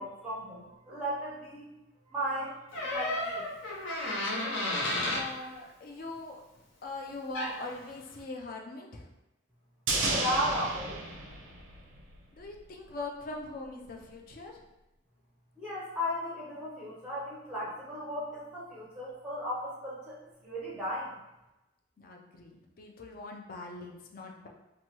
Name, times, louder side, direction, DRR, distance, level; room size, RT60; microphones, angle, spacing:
voice 1, 0.0-1.7 2.1-3.5 10.1-11.0 15.6-21.2, equal, 5° right, -6 dB, 0.5 m, -35 dB
Door, 2.7-5.3 7.1-7.2 7.3-7.7, left 1 dB, 75° left, 0.7 m, -32 dB
voice 2, 4.9-6.4 6.8-9.1 12.3-14.6 22.0-24.5, left 2 dB, 45° left, 1 dB, 0.4 m, -42 dB
sound 1, 9.9-12.3 12.5-12.6, right 2 dB, 80° right, 0.5 m, -32 dB
3.0 x 2.2 x 2.9 m, 0.97 s
head